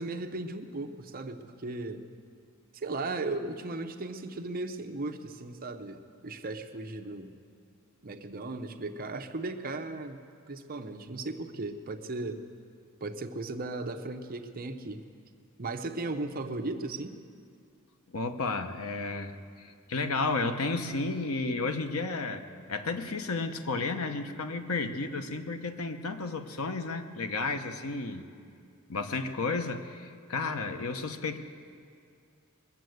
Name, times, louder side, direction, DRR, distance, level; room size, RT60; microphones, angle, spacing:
voice 1, 0.0-2.0 2.7-7.3 8.0-10.2 10.5-12.4 13.0-15.0 15.6-17.1, right 2 dB, 45° right, 6 dB, 0.8 m, -36 dB
voice 2, 18.1-22.4 22.7-28.2 28.9-31.4, left 3 dB, 80° left, 7 dB, 0.9 m, -32 dB
21.5 x 7.5 x 7.9 m, 2.3 s
head